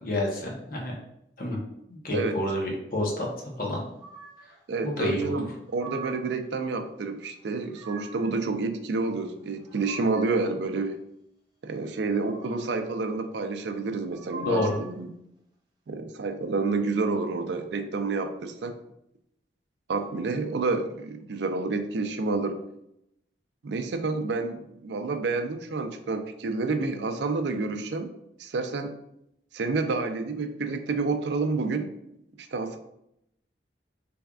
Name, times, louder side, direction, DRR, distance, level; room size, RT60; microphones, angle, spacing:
voice 1, 0.0-1.0 1.4-1.6 1.9-3.8 4.8-5.4 14.4-14.8, left 1 dB, 50° left, -1 dB, 0.8 m, -29 dB
sound 1, 4.0-4.6 5.4-6.4 7.4-8.4 9.3-10.5 12.0-12.9 14.0-15.0, right 4 dB, 25° right, 0.8 m, -44 dB
voice 2, 4.7-5.5 5.7-11.0 11.6-15.1 15.9-18.7 19.9-22.6 23.6-28.1 28.4-28.9 29.5-31.9 32.4-32.8, right 3 dB, 75° right, 7 dB, 0.4 m, -29 dB
3.5 x 3.3 x 2.3 m, 0.78 s
head